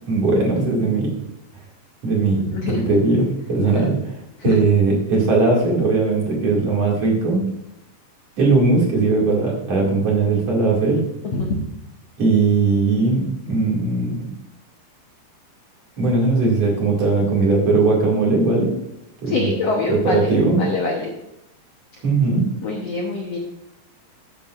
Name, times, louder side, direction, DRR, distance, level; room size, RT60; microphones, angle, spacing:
voice 1, 0.1-1.1 2.0-2.4 2.9-4.0 4.4-7.4 8.4-11.0 12.2-14.1 16.0-18.7 19.2-19.5 19.9-20.6 22.0-22.5, right 3 dB, 45° right, -2 dB, 2.9 m, -19 dB
voice 2, 2.5-2.8 3.7-3.9 4.4-4.6 11.3-11.6 19.3-20.3 20.6-21.1 22.6-23.4, left 3 dB, 85° left, 0 dB, 1.4 m, -24 dB
13.5 x 8.5 x 2.5 m, 0.84 s
omnidirectional pair, 4.5 m